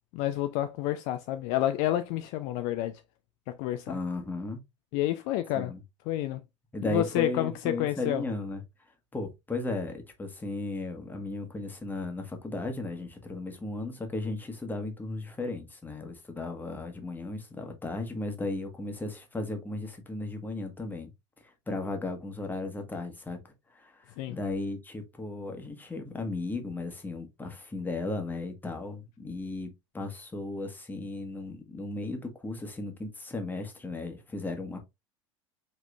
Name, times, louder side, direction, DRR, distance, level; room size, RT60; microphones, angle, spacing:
voice 1, 0.1-3.0 3.5-4.0 4.9-5.7 6.1-6.4 6.8-8.2 24.2-24.4, left 13 dB, 45° left, 0.4 m, -29 dB
voice 2, 3.9-4.6 5.5-5.8 6.7-8.6 9.1-21.1 21.7-23.4 23.7-34.8, left 2 dB, 10° left, 1.3 m, -35 dB
5.2 x 3.6 x 2.4 m
figure-of-eight pair, 80°, 16 cm